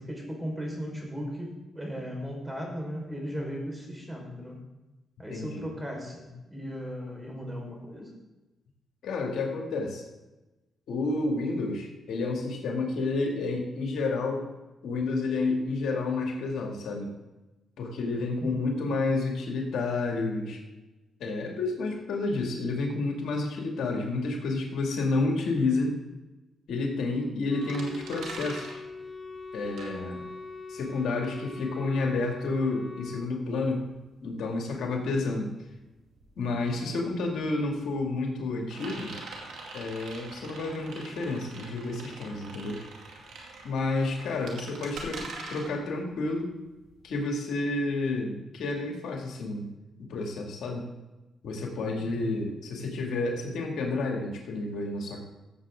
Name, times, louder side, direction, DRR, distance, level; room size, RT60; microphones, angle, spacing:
voice 1, 0.0-4.6 5.2-8.1 18.4-18.7 52.1-52.3, equal, 15° right, 0 dB, 4.4 m, -37 dB
voice 2, 5.3-5.7 9.0-10.0 10.9-14.5 14.8-17.1 17.8-20.6 21.2-26.0 26.7-28.8 29.5-30.3 30.7-33.8 34.2-35.5 36.4-39.1 39.7-42.8 43.6-46.5 47.0-49.7 50.0-50.9 51.4-55.2, left 3 dB, 80° left, 1 dB, 2.2 m, -30 dB
Wind instrument woodwind instrument, 27.5-33.3, left 3 dB, 30° left, 1.1 m, -42 dB
sound 1, 27.6-30.5 30.8-47.2, right 3 dB, 85° right, 2.3 m, -44 dB
15.5 x 7.5 x 3.7 m, 1.1 s
cardioid pair, 80°, 0 cm